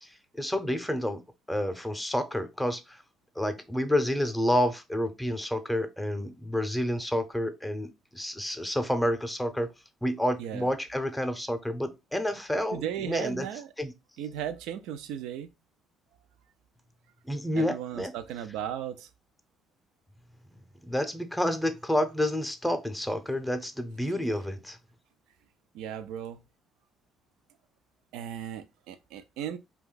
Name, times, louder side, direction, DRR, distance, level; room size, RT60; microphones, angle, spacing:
voice 1, 0.4-1.2 1.5-2.8 3.4-9.7 10.0-13.5 13.8-13.9 17.3-18.1 20.8-24.8, equal, 5° left, 0.6 m, -29 dB
voice 2, 10.4-10.7 12.7-13.7 14.2-15.5 17.6-19.1 25.7-26.4 28.1-29.6, right 10 dB, 80° right, 0.4 m, -36 dB
2.6 x 2.3 x 3.8 m
supercardioid pair, 75°, 0 cm